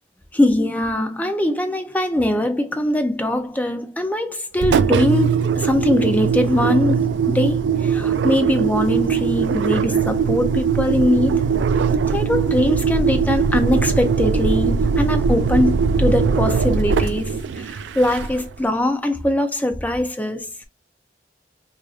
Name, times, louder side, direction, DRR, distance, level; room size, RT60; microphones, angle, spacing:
voice 1, 0.3-11.5 12.1-20.5, left 1 dB, 10° left, 0.4 m, -21 dB
Engine, 4.6-18.5, right 6 dB, 80° right, 0.3 m, -20 dB
4.7 x 2.4 x 2.4 m
head